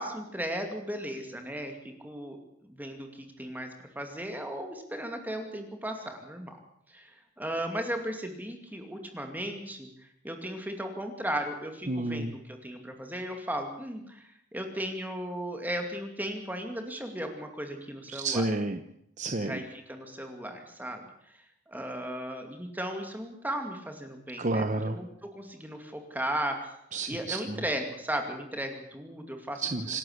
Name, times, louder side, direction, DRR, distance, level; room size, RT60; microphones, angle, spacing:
voice 1, 0.0-1.7 2.0-2.4 2.7-3.7 4.0-6.6 6.9-7.1 7.4-9.9 10.2-18.4 19.5-21.0 21.7-25.1 25.3-26.7 27.1-29.6, right 1 dB, 10° right, 5 dB, 2.4 m, -36 dB
voice 2, 11.9-12.4 18.1-18.8 19.2-19.6 24.4-25.0 26.9-27.6 29.5-30.0, right 2 dB, 35° right, 8 dB, 1.0 m, -30 dB
27.5 x 11.5 x 8.1 m, 0.76 s
head